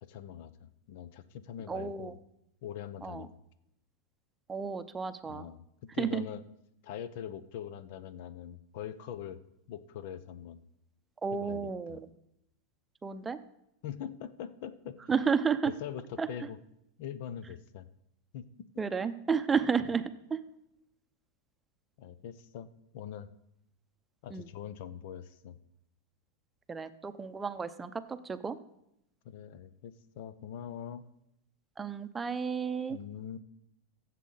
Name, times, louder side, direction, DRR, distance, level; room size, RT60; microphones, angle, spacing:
voice 1, 0.0-2.2 2.6-3.3 5.3-5.6 5.9-6.4 6.8-9.4 9.7-10.6 11.3-12.0 13.8-15.1 15.8-16.6 17.0-17.9 18.3-18.5 22.0-22.7 22.9-23.3 24.2-25.6 29.2-31.0 32.9-33.4, left 9 dB, 60° left, 15 dB, 0.8 m, -42 dB
voice 2, 1.7-2.2 3.0-3.3 4.5-5.5 6.0-6.2 11.2-12.1 13.0-13.4 15.1-15.7 16.2-16.3 18.8-20.4 24.3-24.5 26.7-28.6 31.8-33.0, right 6 dB, 15° right, 10 dB, 0.7 m, -32 dB
15.0 x 7.5 x 4.0 m, 0.80 s
hypercardioid pair, 120°, 0 cm